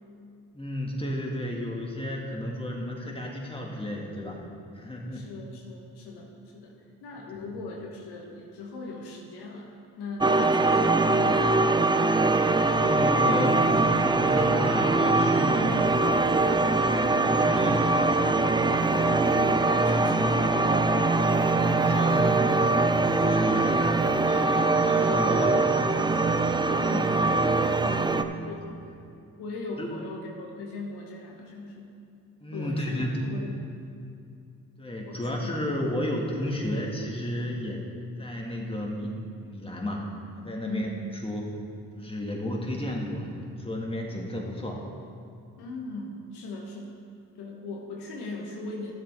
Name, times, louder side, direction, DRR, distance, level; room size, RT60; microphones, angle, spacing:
voice 1, 0.5-4.4 4.7-5.3 7.3-7.5 12.2-16.0 17.0-17.9 21.5-22.9 23.1-24.1 24.9-25.6 28.0-28.5 29.8-29.9 32.4-33.3 34.8-37.9 38.2-39.1 39.4-40.1 40.4-40.9 41.2-41.5 41.9-44.8, left 1 dB, 15° left, -1 dB, 2.2 m, -32 dB
voice 2, 5.1-11.4 18.8-20.8 26.7-27.3 27.7-28.8 29.4-32.0 32.5-33.7 35.1-35.5 40.6-41.0 45.6-47.0 47.4-48.9, left 2 dB, 85° left, -1 dB, 1.3 m, -39 dB
sound 1, 10.2-28.2, right 3 dB, 10° right, 0.5 m, -23 dB
sound 2, 14.7-28.0, right 2 dB, 30° right, 1.1 m, -40 dB
12.5 x 7.6 x 3.7 m, 2.5 s
supercardioid pair, 45°, 39 cm